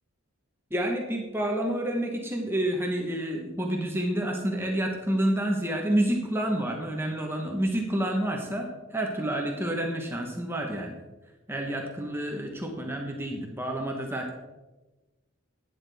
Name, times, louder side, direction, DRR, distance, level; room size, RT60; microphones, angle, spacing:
voice 1, 0.7-11.0 11.5-14.3, right 1 dB, 10° right, 1 dB, 1.0 m, -29 dB
11.5 x 9.3 x 3.5 m, 1.1 s
head